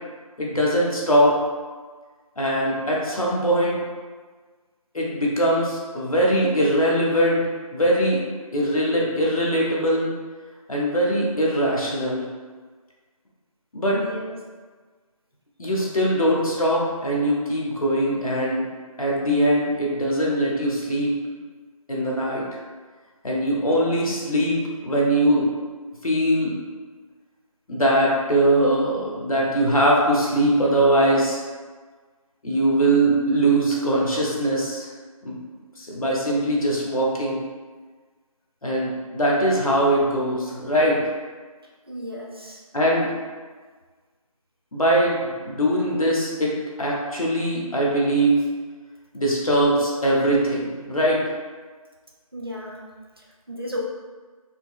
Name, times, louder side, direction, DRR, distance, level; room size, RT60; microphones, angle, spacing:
voice 1, 0.4-1.4 2.4-3.8 4.9-7.4 7.7-8.2 8.5-10.1 10.7-12.3 13.7-14.0 15.6-18.7 19.0-21.2 21.9-22.6 23.2-25.5 26.0-26.5 27.7-31.4 32.4-34.9 35.2-35.4 35.8-37.4 38.6-41.0 42.7-43.1 44.7-48.4 49.1-51.2, right 1 dB, 70° left, -4 dB, 0.9 m, -21 dB
voice 2, 13.9-14.4 23.7-23.9 41.6-42.6 52.3-53.8, equal, 40° right, -2 dB, 0.4 m, -35 dB
4.4 x 2.0 x 2.3 m, 1.4 s
figure-of-eight pair, 175°, 19 cm